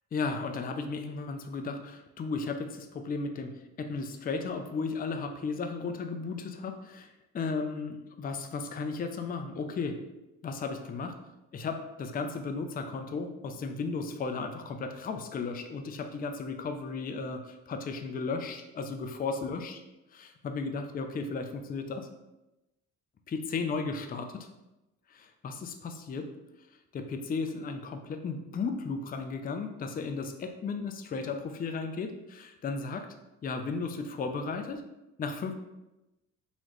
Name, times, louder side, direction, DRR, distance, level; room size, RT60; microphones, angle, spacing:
voice 1, 0.1-10.0 10.4-11.2 11.5-19.8 20.1-22.1 23.3-24.5 25.1-26.3 26.9-33.1 33.4-34.8 35.2-35.5, left 4 dB, 30° left, 6 dB, 0.4 m, -35 dB
4.0 x 3.0 x 3.0 m, 0.97 s
cardioid pair, 90°, 30 cm